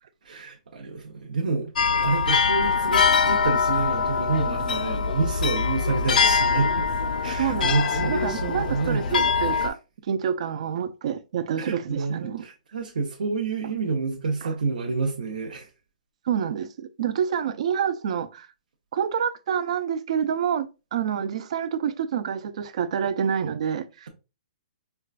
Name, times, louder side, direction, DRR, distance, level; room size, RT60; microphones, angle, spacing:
voice 1, 0.2-1.7 2.0-6.9 7.2-9.7 11.6-15.7, right 4 dB, 90° right, 0.8 m, -28 dB
sound 1, 1.8-9.7, left 5 dB, 85° left, 0.4 m, -23 dB
voice 2, 7.4-9.8 10.1-12.5 14.4-14.5 16.3-18.5 18.9-24.1, right 8 dB, 45° right, 0.4 m, -28 dB
4.4 x 2.2 x 2.4 m
hypercardioid pair, 170°, 4 cm